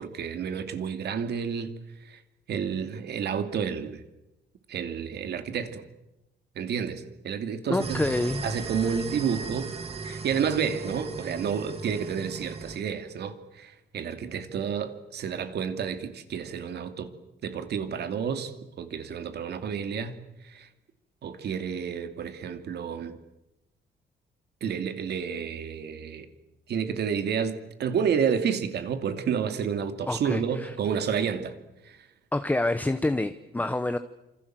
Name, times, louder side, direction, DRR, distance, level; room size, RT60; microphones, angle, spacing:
voice 1, 0.0-1.7 2.1-2.2 2.5-4.0 4.7-5.8 6.6-8.0 8.4-9.7 10.0-17.1 17.4-20.2 20.4-20.7 21.2-23.2 24.6-26.3 26.7-31.5 31.8-32.0, right 7 dB, 60° right, 2.7 m, -30 dB
voice 2, 7.7-8.5 30.1-30.7 32.3-34.0, left 2 dB, 10° left, 0.9 m, -27 dB
sound 1, 7.8-12.8, right 4 dB, 30° right, 2.3 m, -37 dB
27.5 x 26.5 x 7.7 m
cardioid pair, 170°, 19 cm